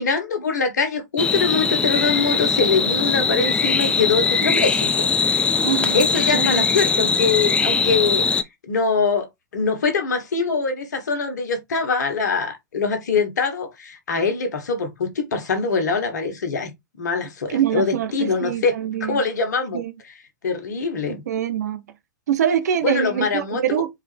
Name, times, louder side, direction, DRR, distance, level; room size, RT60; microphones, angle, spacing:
voice 1, 0.0-5.1 5.9-8.3 8.7-9.3 9.5-16.7 17.0-19.8 20.4-21.2 22.8-23.6, left 4 dB, 70° left, 1.5 m, -23 dB
sound 1, 1.2-8.4, left 5 dB, 10° left, 0.4 m, -21 dB
voice 2, 5.6-6.0 6.3-6.8 17.5-19.2 19.7-19.9 21.1-21.8 22.3-23.9, right 9 dB, 65° right, 0.8 m, -24 dB
4.4 x 3.4 x 3.4 m
figure-of-eight pair, 105°, 10 cm